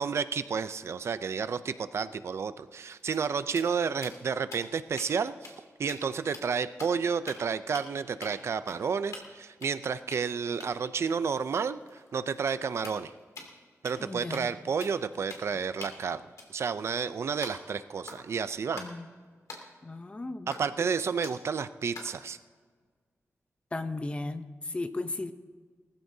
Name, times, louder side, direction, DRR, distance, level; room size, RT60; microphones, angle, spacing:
voice 1, 0.0-5.5 5.8-13.1 13.8-16.2 16.5-18.8 20.5-22.4, right 6 dB, 60° right, 13 dB, 0.4 m, -31 dB
sound 1, 2.7-5.1 5.4-5.6 5.9-6.0 6.3-7.0 7.3-7.5 7.7-7.9 8.2-8.3 8.7-9.4 9.6-13.6 13.8-14.0 14.3-14.6 14.8-15.0 15.3-15.5 15.8-17.7 18.0-18.3 18.7-18.9 19.5-19.6 20.5-20.9 21.2-21.5 21.9-22.2, left 3 dB, 85° left, 2.5 m, -46 dB
voice 2, 14.0-14.5 18.7-19.1 19.8-20.5 23.7-25.3, left 2 dB, 20° left, 9 dB, 0.6 m, -35 dB
20.0 x 14.5 x 2.7 m, 1.6 s
wide cardioid pair, 165°, 5 cm